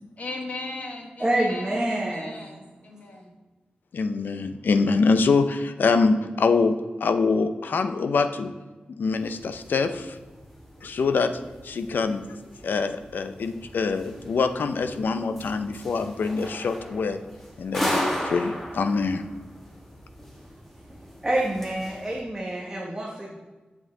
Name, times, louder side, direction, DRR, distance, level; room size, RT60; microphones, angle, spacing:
voice 1, 0.2-3.3, left 2 dB, 50° left, 2 dB, 1.3 m, -37 dB
voice 2, 1.2-2.5 21.2-23.3, right 1 dB, 10° right, -3 dB, 0.9 m, -27 dB
voice 3, 3.9-8.5 8.9-10.2 10.8-17.2 17.6-19.3, left 4 dB, 80° left, 9 dB, 0.5 m, -25 dB
sound 1, 9.1-22.2, equal, 10° left, 1.2 m, -37 dB
7.9 x 7.4 x 3.7 m, 1.2 s
wide cardioid pair, 175°, 3 cm